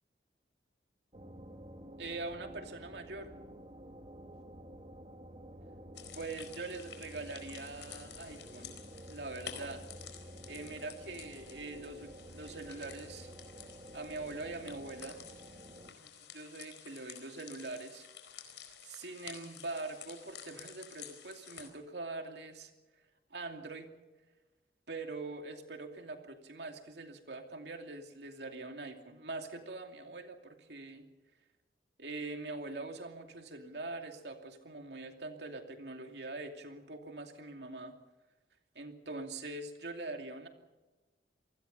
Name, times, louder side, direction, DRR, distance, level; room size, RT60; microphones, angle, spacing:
sound 1, 1.1-15.9, right 1 dB, 35° right, 2.0 m, -51 dB
voice 1, 2.0-3.3 6.1-8.8 9.1-9.8 10.5-13.3 13.9-15.2 15.9-18.1 18.8-22.7 23.3-23.9 24.9-31.1 32.0-37.9 38.7-40.5, right 3 dB, 70° right, 5 dB, 2.6 m, -43 dB
sound 2, 5.9-21.7, left 9 dB, 90° left, 4.4 m, -51 dB
28.0 x 19.5 x 5.5 m, 1.2 s
head